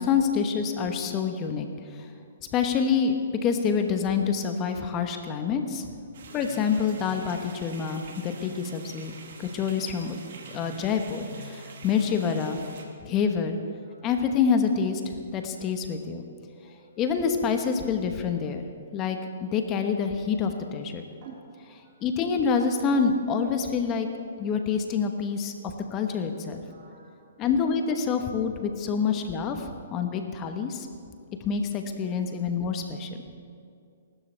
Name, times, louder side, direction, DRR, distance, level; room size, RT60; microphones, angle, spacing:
voice 1, 0.0-2.1 2.5-3.2 3.4-5.9 6.3-10.2 10.5-12.6 13.0-13.6 14.0-15.0 15.3-16.2 17.0-18.7 18.9-21.0 22.0-24.1 24.4-25.5 25.9-26.6 27.4-30.9 31.4-33.2, left 6 dB, 25° left, 6 dB, 1.1 m, -27 dB
sound 1, 6.1-12.8, right 2 dB, 65° right, 2.2 m, -44 dB
voice 2, 16.6-17.0 21.2-21.9 26.7-27.3 32.2-32.3, right 6 dB, 40° right, -4 dB, 2.2 m, -51 dB
22.5 x 12.5 x 3.4 m, 2.3 s
hypercardioid pair, 140°, 0 cm